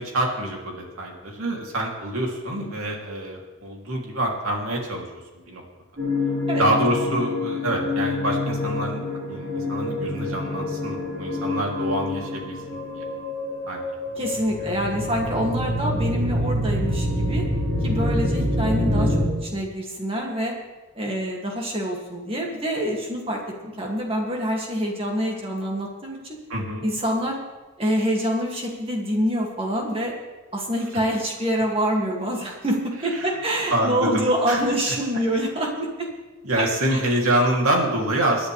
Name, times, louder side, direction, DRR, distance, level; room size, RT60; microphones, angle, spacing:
voice 1, 0.0-5.1 5.5-5.6 6.6-9.0 9.3-13.0 13.7-13.8 14.6-14.8 26.5-26.8 33.2-33.3 33.7-34.6 36.4-38.5, right 1 dB, 85° right, -1 dB, 2.9 m, -26 dB
sound 1, 6.0-19.3, left 1 dB, 55° right, 5.1 m, -26 dB
voice 2, 14.2-17.4 17.8-19.2 19.4-20.5 21.0-26.4 26.8-27.4 27.8-30.1 30.5-36.1 36.6-37.0, equal, 25° right, -1 dB, 2.2 m, -26 dB
25.5 x 10.0 x 3.4 m, 1.2 s
head